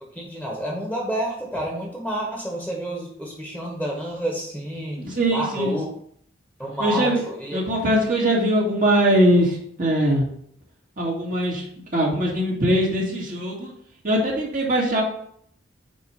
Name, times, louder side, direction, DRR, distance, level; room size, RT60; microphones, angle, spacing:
voice 1, 0.1-5.0 5.3-5.9 6.6-7.6, right 1 dB, 5° right, -2 dB, 1.3 m, -29 dB
voice 2, 5.0-5.8 6.8-7.2 7.5-10.3 11.0-11.6 11.9-13.7 14.0-15.0, equal, 45° right, -3 dB, 2.1 m, -21 dB
9.1 x 3.2 x 5.0 m, 0.65 s
head